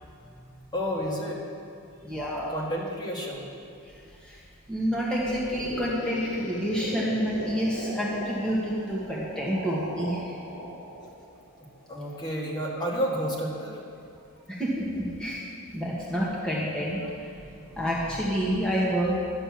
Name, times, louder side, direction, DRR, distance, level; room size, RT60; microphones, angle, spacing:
voice 1, 0.7-1.4 2.5-3.5 11.9-13.8, equal, 20° left, -3 dB, 1.7 m, -30 dB
voice 2, 2.0-2.5 4.2-4.4 4.7-10.3 14.5-15.4 15.7-17.3 17.6-19.1, equal, 5° left, -6 dB, 1.6 m, -28 dB
sound 1, 5.3-12.1, equal, 85° left, 3.0 m, -38 dB
11.5 x 6.8 x 7.4 m, 2.4 s
head